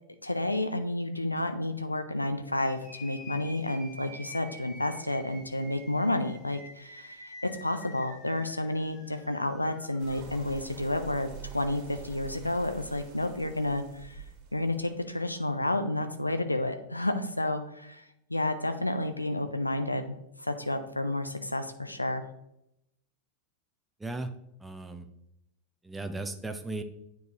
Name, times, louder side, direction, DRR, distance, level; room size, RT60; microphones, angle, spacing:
voice 1, 0.2-14.2 14.5-18.0 18.3-22.2, left 1 dB, 85° left, 8 dB, 0.5 m, -31 dB
sound 1, 2.6-10.5, left 1 dB, 25° left, 2.2 m, -49 dB
sound 2, 10.0-15.5, right 7 dB, 40° right, 1.7 m, -46 dB
voice 2, 24.6-25.1 25.8-26.8, right 2 dB, 10° right, 7 dB, 0.7 m, -36 dB
9.2 x 4.6 x 2.9 m, 0.82 s
figure-of-eight pair, 90°, 0 cm